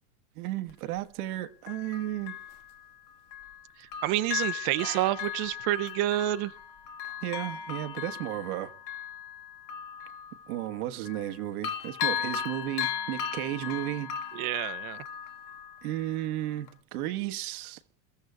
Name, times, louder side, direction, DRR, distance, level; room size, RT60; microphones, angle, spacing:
voice 1, 0.3-2.4 4.8-5.1 7.2-8.7 10.5-14.1 15.8-17.8, right 14 dB, 85° right, 1.3 m, -34 dB
Bell, 0.7-0.8 1.7-3.6 3.9-11.3 11.6-16.3 16.7-16.8, left 9 dB, 60° left, 1.5 m, -37 dB
voice 2, 3.8-6.5 14.3-15.0, right 15 dB, 45° right, 0.6 m, -29 dB
29.0 x 14.5 x 2.2 m
supercardioid pair, 150°, 43 cm